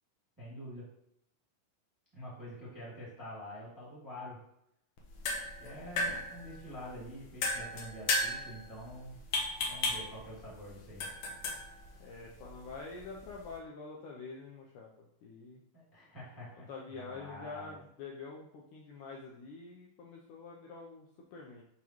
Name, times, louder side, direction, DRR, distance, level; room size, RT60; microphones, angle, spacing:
voice 1, 0.4-0.8 2.1-4.4 5.6-9.2 9.7-11.1 15.7-17.8, equal, 5° right, -8 dB, 1.7 m, -46 dB
sound 1, 5.0-13.6, left 2 dB, 65° left, 1.8 m, -37 dB
voice 2, 12.0-15.6 16.3-21.6, left 4 dB, 85° left, -2 dB, 1.8 m, -47 dB
11.0 x 3.7 x 3.0 m, 0.77 s
omnidirectional pair, 4.5 m